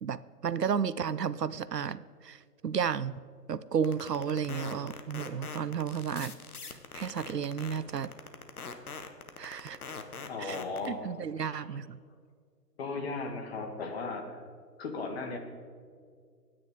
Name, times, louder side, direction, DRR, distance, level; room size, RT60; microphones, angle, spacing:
voice 1, 0.0-3.2 3.5-6.3 6.6-8.1 9.4-9.8 10.4-10.6 10.9-12.0, right 7 dB, 75° right, 17 dB, 0.7 m, -33 dB
sound 1, 3.8-10.9, left 5 dB, 60° left, 1.5 m, -42 dB
voice 2, 10.3-11.1 11.4-11.8 12.8-14.4 14.8-15.4, left 3 dB, 40° left, 4 dB, 2.0 m, -37 dB
26.0 x 9.6 x 3.8 m, 2.1 s
figure-of-eight pair, 130°, 48 cm